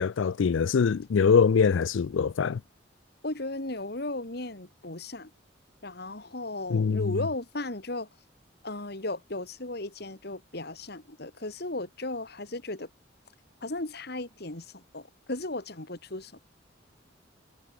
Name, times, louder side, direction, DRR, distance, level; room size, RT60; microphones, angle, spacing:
voice 1, 0.0-2.6 6.7-7.2, left 6 dB, 75° left, 0.4 m, -23 dB
voice 2, 3.2-5.3 5.8-8.1 8.6-12.9 13.6-16.4, left 2 dB, 55° left, 2.4 m, -35 dB
head